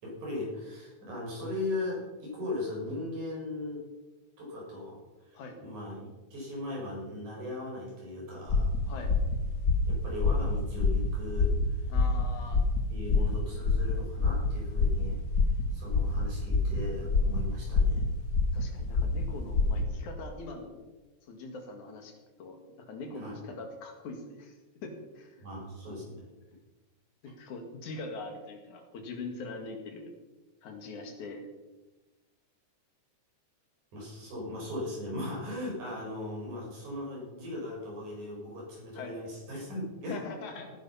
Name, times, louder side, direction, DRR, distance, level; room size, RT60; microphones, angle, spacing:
voice 1, 0.0-3.8 4.4-8.7 9.9-11.8 12.9-18.0 23.1-23.4 25.4-26.3 33.9-40.2, left 1 dB, 70° right, -3 dB, 7.2 m, -38 dB
sound 1, 8.5-19.8, left 3 dB, 50° left, 1.1 m, -27 dB
voice 2, 11.9-12.6 18.5-20.8 21.3-24.6 24.8-25.4 27.2-30.1 30.6-31.4 39.0-39.2 40.1-40.7, left 3 dB, 75° left, 5 dB, 3.5 m, -42 dB
17.5 x 10.5 x 5.7 m, 1.2 s
omnidirectional pair, 3.5 m